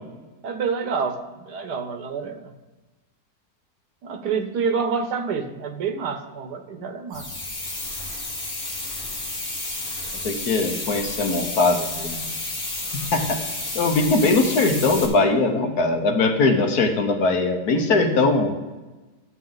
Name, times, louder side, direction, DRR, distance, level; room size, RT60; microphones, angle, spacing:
voice 1, 0.4-2.5 4.0-7.3, right 5 dB, 90° right, 8 dB, 1.6 m, -28 dB
sound 1, 7.1-15.1, left 2 dB, 30° left, 1.6 m, -31 dB
voice 2, 10.2-12.2 13.1-13.4 13.7-18.5, left 3 dB, 75° left, 5 dB, 1.7 m, -21 dB
12.0 x 8.1 x 3.9 m, 1.2 s
omnidirectional pair, 1.7 m